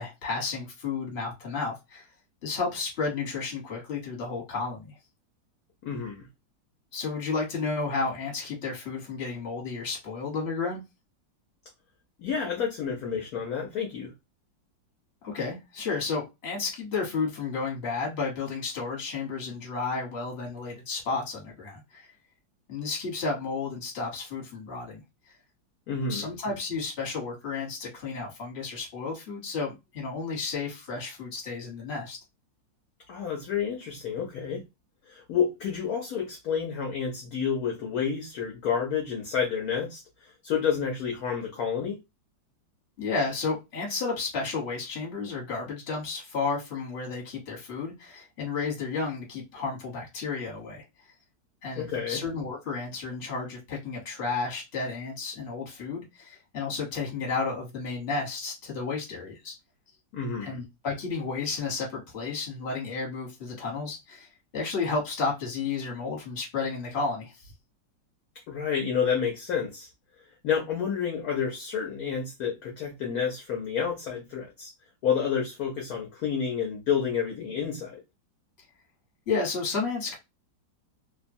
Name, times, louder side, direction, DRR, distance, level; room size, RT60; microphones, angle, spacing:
voice 1, 0.0-2.1 2.4-4.9 6.9-10.8 15.2-22.1 22.7-25.0 25.3-25.4 26.1-32.2 43.0-50.8 51.6-59.5 60.4-64.3 64.5-67.5 79.3-80.2, left 4 dB, 40° left, 1.2 m, -32 dB
voice 2, 5.8-6.3 12.2-14.1 25.9-26.3 33.1-34.6 35.1-42.0 51.8-52.2 60.1-60.6 68.5-69.9 70.4-74.7 75.0-78.0, left 7 dB, 65° left, 1.0 m, -29 dB
2.9 x 2.2 x 2.5 m
omnidirectional pair, 2.0 m